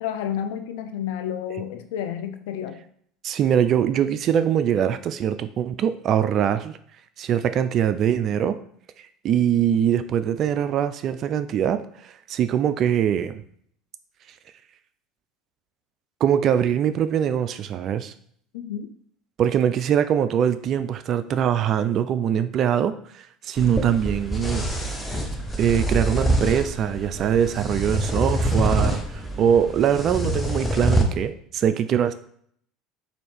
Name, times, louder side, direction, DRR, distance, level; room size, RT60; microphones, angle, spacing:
voice 1, 0.0-2.8 18.5-18.9, left 9 dB, 70° left, 8 dB, 0.4 m, -30 dB
voice 2, 3.2-6.8 7.2-8.6 9.2-13.4 16.2-18.1 19.4-24.7 25.6-32.1, right 9 dB, 50° right, 12 dB, 0.3 m, -22 dB
sound 1, 23.6-31.0, right 1 dB, 10° left, 0.7 m, -25 dB
4.1 x 2.6 x 3.3 m, 0.63 s
hypercardioid pair, 70°, 0 cm